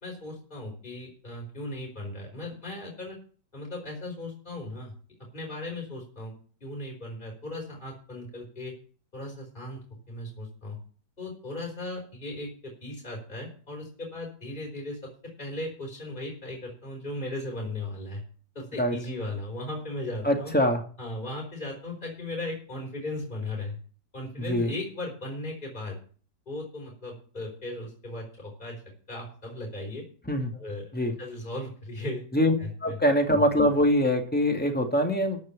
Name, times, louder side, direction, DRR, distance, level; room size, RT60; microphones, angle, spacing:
voice 1, 0.0-3.2 3.5-4.9 5.3-6.3 6.6-8.7 9.1-10.8 11.2-18.2 18.5-20.5 21.0-23.8 24.1-26.0 26.5-28.8 29.1-30.0 30.5-30.9 31.2-32.2 32.6-33.0, left 2 dB, 25° left, -1 dB, 4.7 m, -37 dB
voice 2, 20.2-20.8 24.5-24.7 30.3-30.5 30.9-31.1 32.3-32.5 32.8-35.4, equal, 5° left, 3 dB, 2.1 m, -23 dB
14.0 x 6.5 x 7.2 m, 0.41 s
omnidirectional pair, 1.9 m